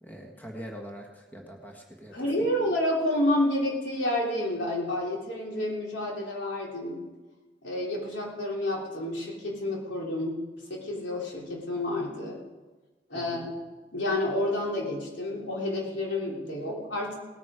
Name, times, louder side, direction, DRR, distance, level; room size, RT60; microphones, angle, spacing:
voice 1, 0.0-2.1 13.1-13.4, equal, 10° left, 0 dB, 1.5 m, -43 dB
voice 2, 2.1-7.0 7.6-10.4 10.7-12.4 13.1-13.5 13.9-17.2, left 1 dB, 90° left, -3 dB, 3.5 m, -29 dB
18.5 x 9.1 x 5.0 m, 1.2 s
head